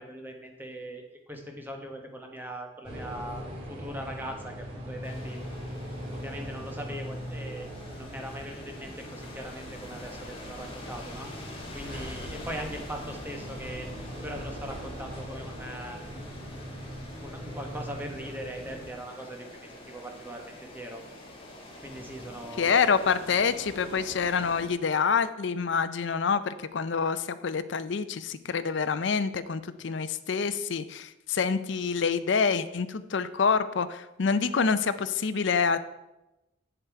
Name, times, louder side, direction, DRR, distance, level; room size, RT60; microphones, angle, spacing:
voice 1, 0.0-3.4 3.7-5.4 6.1-11.3 11.7-13.9 14.2-16.0 17.2-21.0 21.8-22.9, right 1 dB, 10° right, 2 dB, 1.1 m, -40 dB
sound 1, 2.8-18.9, equal, 30° right, 2.3 m, -41 dB
sound 2, 5.0-24.7, left 1 dB, 25° left, 1.8 m, -45 dB
voice 2, 22.6-35.8, left 5 dB, 60° left, 13 dB, 0.5 m, -27 dB
7.9 x 7.4 x 4.6 m, 0.96 s
head